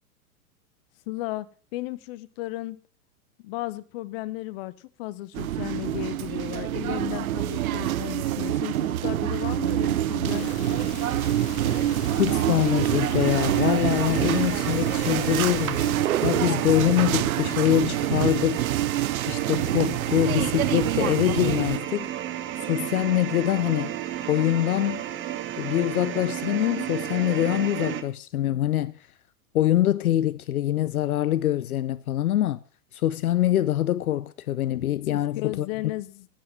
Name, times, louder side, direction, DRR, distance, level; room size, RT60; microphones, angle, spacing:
voice 1, 1.1-1.5 1.7-2.8 3.4-10.5 35.1-36.3, left 17 dB, 40° left, 0.8 m, -34 dB
sound 1, 5.3-21.8, right 12 dB, 65° right, 0.6 m, -26 dB
sound 2, 10.3-16.0, left 12 dB, 15° left, 0.4 m, -40 dB
voice 2, 12.2-15.9 16.2-18.7 19.3-22.1 22.6-24.0 24.3-25.0 25.6-29.0 29.5-32.6 32.9-35.7, left 13 dB, 70° left, 0.6 m, -24 dB
sound 3, 13.2-28.0, right 11 dB, 25° right, 1.1 m, -33 dB
11.0 x 8.6 x 5.6 m
figure-of-eight pair, 100°, 46 cm